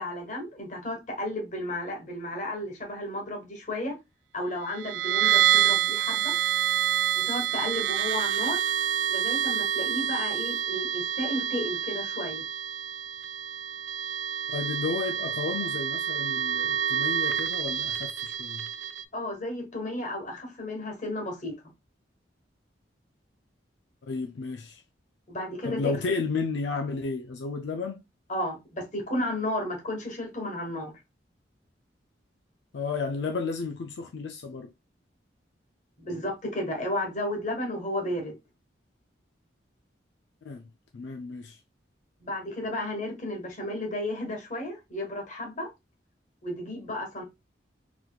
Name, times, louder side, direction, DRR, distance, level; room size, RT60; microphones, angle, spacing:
voice 1, 0.0-3.9 4.3-6.3 7.1-8.6 9.1-12.4 19.1-21.5 25.3-25.9 28.3-30.9 36.0-38.4 42.2-45.7 46.4-47.2, left 1 dB, 45° left, 1.2 m, -33 dB
sound 1, 4.7-19.0, right 10 dB, 90° right, 0.4 m, -28 dB
voice 2, 14.5-18.7 24.0-24.8 25.6-28.0 32.7-34.7 40.4-40.7 40.9-41.6, left 4 dB, 75° left, 0.4 m, -32 dB
4.0 x 2.9 x 2.3 m
head